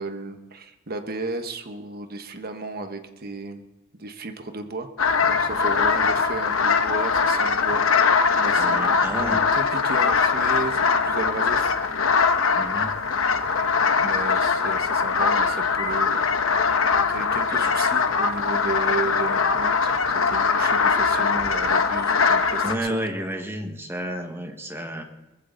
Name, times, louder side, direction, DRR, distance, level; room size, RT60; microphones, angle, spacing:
voice 1, 0.0-3.6 4.0-4.9 5.2-7.9 8.4-8.8 9.1-11.7 14.0-16.1 17.1-23.0, right 3 dB, 50° right, 7 dB, 1.2 m, -33 dB
sound 1, 5.0-22.8, left 5 dB, 85° left, 1.0 m, -21 dB
voice 2, 8.6-9.4 12.5-13.0 22.6-25.0, right 1 dB, 10° right, 4 dB, 1.5 m, -31 dB
20.0 x 15.0 x 4.0 m, 1.0 s
head